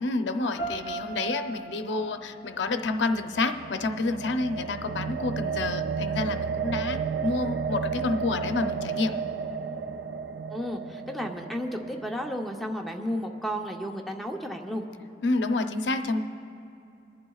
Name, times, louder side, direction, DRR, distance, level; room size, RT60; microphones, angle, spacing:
voice 1, 0.0-9.2 15.2-16.2, left 3 dB, 85° left, 7 dB, 0.6 m, -29 dB
sound 1, 0.6-3.6, right 4 dB, 15° right, 3.2 m, -38 dB
sound 2, 2.7-12.9, right 6 dB, 75° right, 0.4 m, -33 dB
voice 2, 10.5-14.8, equal, ahead, 1 dB, 0.7 m, -33 dB
29.0 x 11.0 x 2.4 m, 2.7 s
head